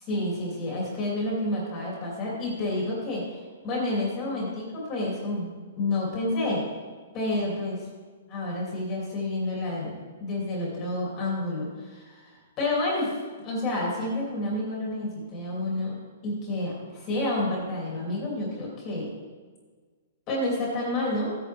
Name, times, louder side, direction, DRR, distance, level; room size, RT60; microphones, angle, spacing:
voice 1, 0.1-5.5 5.8-6.6 7.1-7.8 8.3-13.1 13.4-15.9 16.2-19.1 20.3-21.4, left 1 dB, 20° left, -4 dB, 2.6 m, -29 dB
15.5 x 9.5 x 3.4 m, 1.5 s
hypercardioid pair, 180°, 0 cm